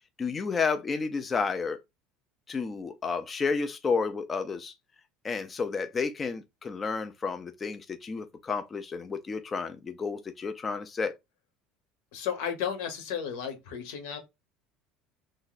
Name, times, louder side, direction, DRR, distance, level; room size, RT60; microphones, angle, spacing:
voice 1, 0.2-1.8 2.5-4.7 5.2-11.1, left 5 dB, 20° left, 0.3 m, -31 dB
voice 2, 12.1-14.2, left 8 dB, 85° left, 1.0 m, -33 dB
2.7 x 2.0 x 3.9 m
cardioid pair, 135°, 0 cm